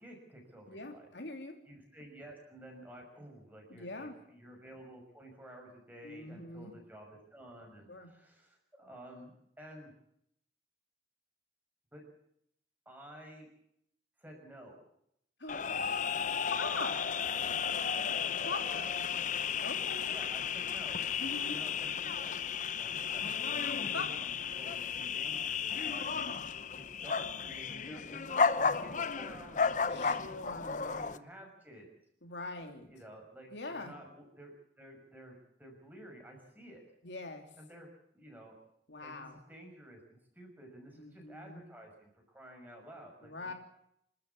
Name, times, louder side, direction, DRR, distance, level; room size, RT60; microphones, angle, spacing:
voice 1, 0.0-1.1 1.7-9.9 11.9-12.0 12.8-13.5 14.2-14.8 15.7-16.1 18.7-18.9 20.1-22.4 22.8-23.2 23.5-26.3 26.7-31.9 32.9-36.8 37.6-38.5 39.0-43.6, right 1 dB, 10° right, 1 dB, 6.3 m, -52 dB
voice 2, 0.7-1.6 3.7-4.2 6.0-6.7 7.9-8.1 15.4-15.6 16.5-17.0 18.4-18.9 19.6-20.1 21.2-21.6 23.7-24.1 29.9-31.1 32.2-32.9 33.5-33.9 37.0-37.4 38.9-39.4 41.0-41.6 43.2-43.5, left 3 dB, 80° left, 4 dB, 3.1 m, -42 dB
sound 1, 15.5-31.2, left 6 dB, 45° left, 0.8 m, -34 dB
27.5 x 13.0 x 8.5 m, 0.75 s
head